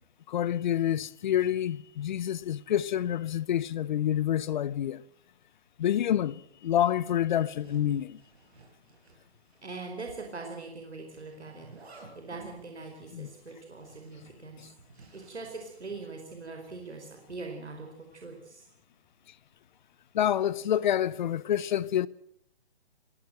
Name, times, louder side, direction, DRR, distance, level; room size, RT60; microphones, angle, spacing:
voice 1, 0.3-5.0 5.8-8.2 13.1-13.3 14.6-14.7 20.1-22.1, left 11 dB, 45° left, 0.8 m, -28 dB
Zipper (clothing), 7.3-9.9 10.1-10.2 11.1-16.0, right 3 dB, 70° right, 7.4 m, -55 dB
voice 2, 9.6-11.7 12.1-14.6 15.1-18.7, right 3 dB, 90° right, 4.8 m, -42 dB
22.0 x 16.5 x 7.8 m
hypercardioid pair, 145°, 33 cm